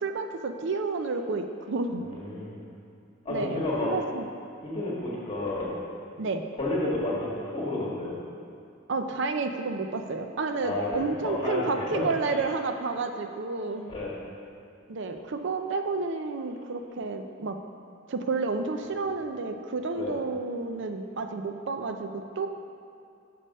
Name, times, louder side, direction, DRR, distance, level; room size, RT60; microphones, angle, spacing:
voice 1, 0.0-2.1 3.3-4.3 6.2-6.4 8.9-13.9 14.9-17.6 18.1-22.5, right 3 dB, 60° right, 6 dB, 0.5 m, -30 dB
voice 2, 2.0-2.6 3.2-3.9 4.6-5.7 6.6-8.2 10.6-12.4 13.9-14.1 20.0-20.1, left 2 dB, 30° left, -6 dB, 1.5 m, -31 dB
6.8 x 5.4 x 5.4 m, 2.5 s
head